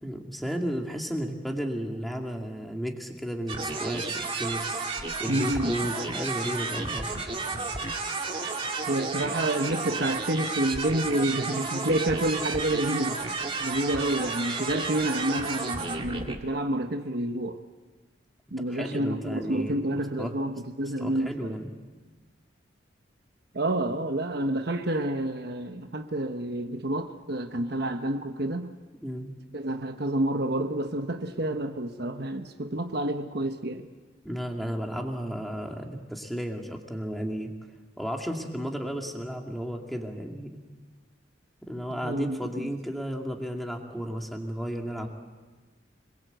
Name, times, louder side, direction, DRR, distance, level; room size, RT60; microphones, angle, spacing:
voice 1, 0.0-7.1 18.6-20.4 21.0-21.7 22.0-22.1 29.0-29.3 34.2-37.5 38.0-40.6 41.6-45.1, equal, ahead, 2.4 m, -33 dB
sound 1, 3.5-16.4, right 3 dB, 30° right, 2.0 m, -32 dB
voice 2, 5.3-5.7 8.9-17.6 18.5-21.6 23.5-28.8 29.5-33.9 42.0-42.7, right 1 dB, 55° right, 1.1 m, -29 dB
26.5 x 21.5 x 8.0 m
head